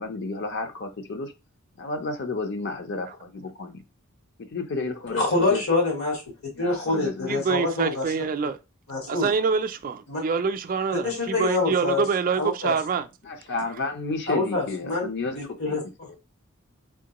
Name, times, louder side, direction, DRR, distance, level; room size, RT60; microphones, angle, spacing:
voice 1, 0.0-1.3 1.8-3.8 4.4-5.6 6.5-7.4 13.2-15.8 16.0-16.2, left 3 dB, 55° left, 0.6 m, -32 dB
voice 2, 5.1-6.2 6.6-8.0 8.9-9.3 10.1-10.2 11.0-12.0 12.4-12.7 14.3-15.1 15.6-16.2, left 3 dB, 75° left, 1.8 m, -25 dB
voice 3, 7.3-8.6 9.1-13.1, right 5 dB, 40° right, 0.3 m, -26 dB
3.7 x 2.9 x 2.9 m
head